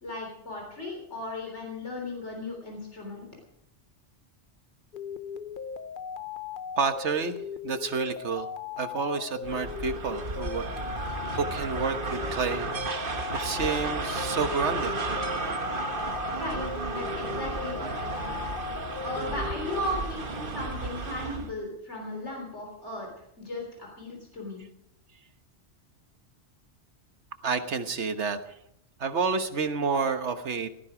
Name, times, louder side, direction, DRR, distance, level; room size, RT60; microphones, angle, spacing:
voice 1, 0.0-3.3 16.4-16.6 16.9-18.4 19.0-24.6, left 1 dB, 80° left, 0 dB, 4.0 m, -36 dB
sound 1, 4.9-20.0, left 7 dB, 50° left, 0.9 m, -38 dB
voice 2, 6.8-7.4 7.6-8.5 8.8-10.7 11.0-12.7 13.0-13.1 13.4-15.0 17.8-17.9 27.4-28.4 29.0-30.7, right 5 dB, 75° right, 9 dB, 1.5 m, -29 dB
sound 2, 9.4-21.5, right 3 dB, 50° right, 1.5 m, -33 dB
17.5 x 14.0 x 5.0 m, 0.77 s
omnidirectional pair, 1.2 m